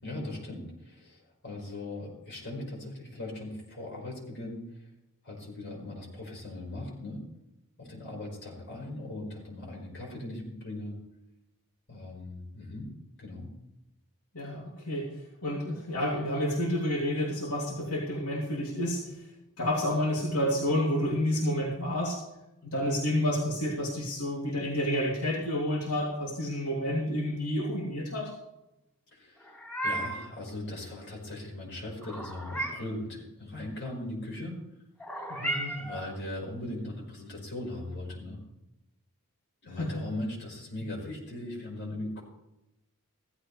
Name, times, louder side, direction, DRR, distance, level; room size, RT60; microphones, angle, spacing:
voice 1, 0.0-4.9 5.2-7.3 7.8-11.0 11.9-12.9 13.2-13.5 20.2-20.3 29.1-29.6 29.8-34.6 35.8-38.4 39.6-42.2, left 1 dB, 55° left, -1 dB, 5.2 m, -39 dB
voice 2, 14.3-15.1 15.4-19.2 19.6-22.2 22.6-28.3 35.3-35.7 39.7-39.9, left 1 dB, 90° left, -2 dB, 2.9 m, -29 dB
Meow, 29.4-30.3 32.0-33.0 35.0-36.1, right 1 dB, 10° left, 3.8 m, -35 dB
16.0 x 15.0 x 3.3 m, 0.91 s
head